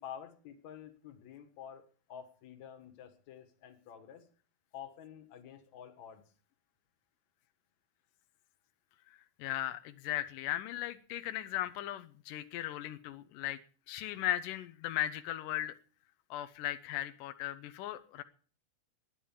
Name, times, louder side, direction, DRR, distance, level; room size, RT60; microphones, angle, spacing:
voice 1, 0.0-1.8 2.1-4.2 4.7-6.2, left 9 dB, 55° left, 7 dB, 2.3 m, -49 dB
voice 2, 9.4-13.6 13.9-15.8 16.3-18.2, left 13 dB, 90° left, 10 dB, 1.8 m, -37 dB
12.5 x 10.5 x 7.3 m, 0.43 s
omnidirectional pair, 4.7 m